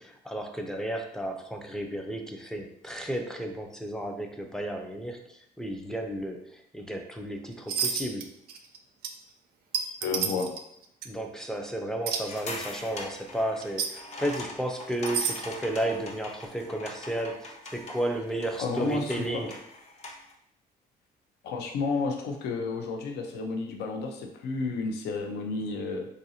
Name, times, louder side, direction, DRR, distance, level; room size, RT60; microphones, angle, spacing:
voice 1, 0.0-8.3 11.0-19.6, right 1 dB, 5° left, 3 dB, 0.4 m, -33 dB
sound 1, 7.7-8.2 8.5-8.8 9.0-9.1 9.7-10.6 11.0-11.1 12.1-12.2 13.6-13.9 14.9-15.4, right 7 dB, 65° right, 0.4 m, -29 dB
voice 2, 10.0-10.5 18.6-19.5 21.4-26.1, left 4 dB, 75° left, 3 dB, 0.6 m, -31 dB
sound 2, 12.2-20.3, left 2 dB, 40° left, 0.7 m, -42 dB
3.9 x 2.5 x 2.8 m, 0.74 s
cardioid pair, 110°, 17 cm